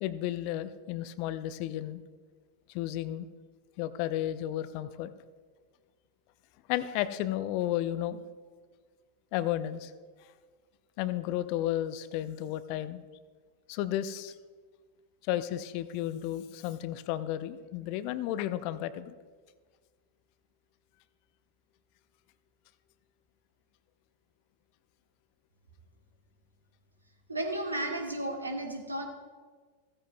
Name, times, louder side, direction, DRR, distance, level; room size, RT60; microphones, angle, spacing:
voice 1, 0.0-2.0 2.7-3.3 3.8-5.1 6.7-8.2 9.3-9.9 11.0-13.0 13.7-14.3 15.2-19.1, left 13 dB, 45° left, 14 dB, 0.5 m, -33 dB
voice 2, 27.3-29.0, right 1 dB, 80° right, 3 dB, 1.5 m, -33 dB
15.5 x 14.0 x 2.2 m, 1.5 s
figure-of-eight pair, 90°, 0 cm